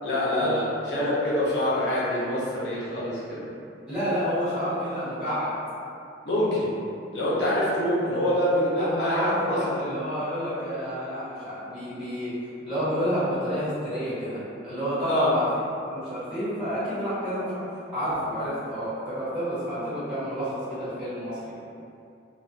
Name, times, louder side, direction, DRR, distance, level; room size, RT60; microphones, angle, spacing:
voice 1, 0.0-3.4 6.2-6.7 7.1-10.0 15.1-15.3, left 1 dB, 70° left, -8 dB, 0.7 m, -25 dB
voice 2, 3.9-5.5 8.8-12.3 12.6-15.5 15.9-17.6 17.9-21.5, equal, 5° right, -14 dB, 0.9 m, -29 dB
2.3 x 2.3 x 2.5 m, 2.6 s
head